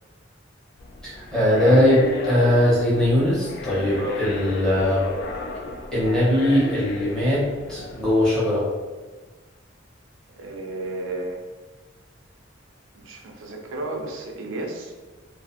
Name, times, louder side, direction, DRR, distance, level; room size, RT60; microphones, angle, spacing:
sound 1, 0.8-8.4, left 2 dB, 60° left, 0.3 m, -34 dB
voice 1, 1.0-5.0 5.9-8.7, left 1 dB, 5° left, -9 dB, 0.9 m, -20 dB
voice 2, 3.9-4.2 10.3-11.4 12.9-14.9, right 2 dB, 90° right, 2 dB, 0.5 m, -33 dB
2.4 x 2.4 x 2.5 m, 1.3 s
head